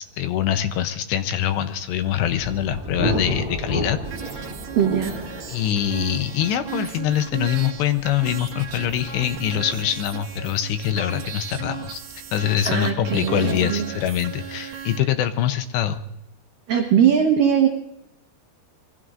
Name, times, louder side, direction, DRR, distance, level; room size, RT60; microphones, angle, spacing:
voice 1, 0.0-4.5 5.5-12.0 12.3-16.0, left 10 dB, 80° left, 10 dB, 2.5 m, -24 dB
Thunder, 1.6-13.2, right 1 dB, 20° right, 2.6 m, -34 dB
sound 1, 4.0-15.0, right 9 dB, 60° right, 2.3 m, -36 dB
voice 2, 4.8-5.6 12.7-13.9 14.6-14.9 16.7-17.7, right 8 dB, 75° right, 3 dB, 2.0 m, -21 dB
26.5 x 21.0 x 2.5 m, 0.84 s
omnidirectional pair, 5.7 m